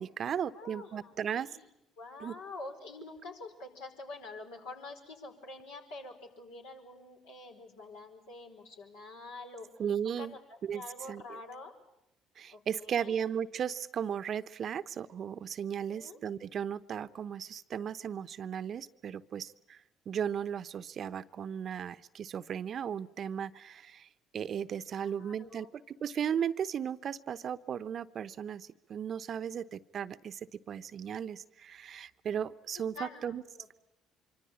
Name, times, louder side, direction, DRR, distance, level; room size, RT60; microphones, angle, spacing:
voice 1, 0.0-1.5 2.2-2.3 9.8-10.3 10.6-10.8 11.1-11.2 12.4-19.8 20.1-24.1 24.3-33.4, right 8 dB, 50° right, 14 dB, 0.9 m, -36 dB
voice 2, 0.5-1.7 2.0-9.7 10.0-10.4 10.7-11.7 12.5-13.2 15.6-16.2 24.9-25.7 32.9-33.8, left 2 dB, 75° left, 1 dB, 5.0 m, -47 dB
25.5 x 25.0 x 8.6 m, 0.84 s
hypercardioid pair, 55°, 0 cm